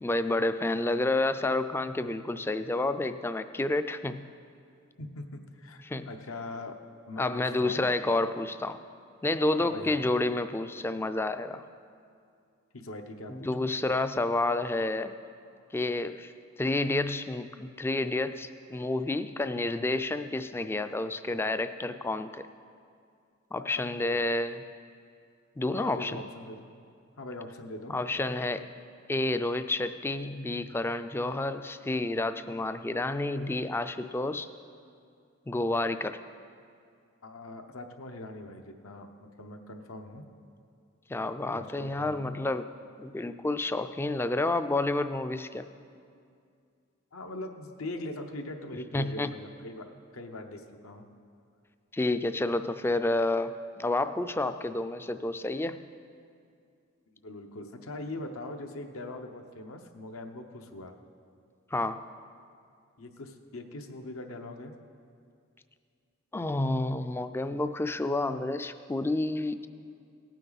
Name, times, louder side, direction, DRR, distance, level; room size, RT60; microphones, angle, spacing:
voice 1, 0.0-4.3 5.9-6.1 7.2-8.8 9.2-11.6 13.3-15.1 15.7-16.3 16.6-22.4 23.5-24.6 25.6-26.2 27.9-28.7 29.1-34.5 35.5-36.1 41.1-42.7 43.0-45.7 48.9-49.3 51.9-53.5 53.8-55.8 61.7-62.0 66.3-69.7, left 2 dB, 10° left, 11 dB, 0.3 m, -29 dB
voice 2, 5.0-6.8 7.1-7.8 9.6-10.0 12.7-13.7 23.6-24.2 25.7-26.7 27.2-27.9 37.2-39.1 39.4-40.3 41.5-42.2 47.1-49.9 50.1-51.0 57.2-60.9 63.0-64.7, left 2 dB, 80° left, 5 dB, 0.9 m, -41 dB
18.0 x 9.1 x 4.0 m, 2.3 s
head